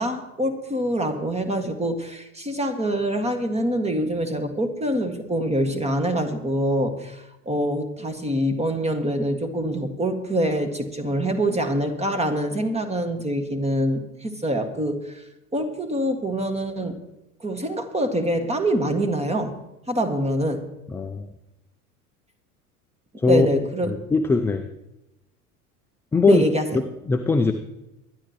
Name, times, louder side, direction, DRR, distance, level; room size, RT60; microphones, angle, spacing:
voice 1, 0.0-15.2 15.5-17.0 17.4-19.6 19.9-20.6 23.3-23.9 26.3-26.7, right 1 dB, 15° right, 7 dB, 1.8 m, -25 dB
voice 2, 20.9-21.3 23.2-24.7 26.1-26.4 26.7-27.5, left 4 dB, 5° left, 6 dB, 0.3 m, -21 dB
23.0 x 11.0 x 3.0 m, 0.92 s
hypercardioid pair, 80°, 45 cm